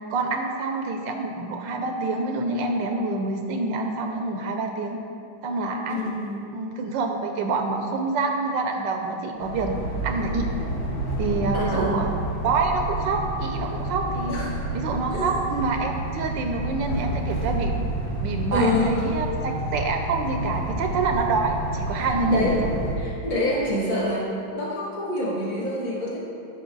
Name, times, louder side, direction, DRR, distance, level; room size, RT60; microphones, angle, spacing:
voice 1, 0.1-5.0 5.4-6.0 6.5-9.7 10.0-10.5 11.2-12.1 12.4-14.4 14.7-17.8 18.2-22.7, right 3 dB, 75° right, 4 dB, 1.2 m, -26 dB
voice 2, 5.9-6.5 11.5-12.0 14.3-14.6 15.1-15.3 18.5-18.9 22.0-22.6 23.0-26.2, left 1 dB, 45° left, -4 dB, 2.0 m, -26 dB
sound 1, 9.4-23.0, right 2 dB, 70° left, 2.4 m, -29 dB
11.0 x 5.9 x 3.9 m, 2.6 s
omnidirectional pair, 2.2 m